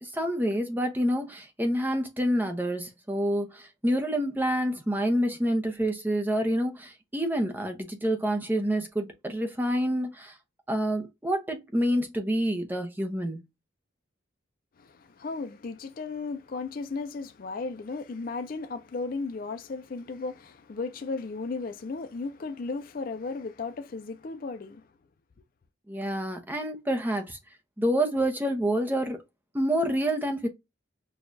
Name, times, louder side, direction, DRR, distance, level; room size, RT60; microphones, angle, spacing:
voice 1, 0.0-10.3 10.7-13.4 25.9-27.4 27.8-29.2 29.5-30.5, equal, 10° right, 0.6 m, -27 dB
voice 2, 14.8-24.8, left 4 dB, 45° left, 0.4 m, -35 dB
6.2 x 2.3 x 2.5 m
head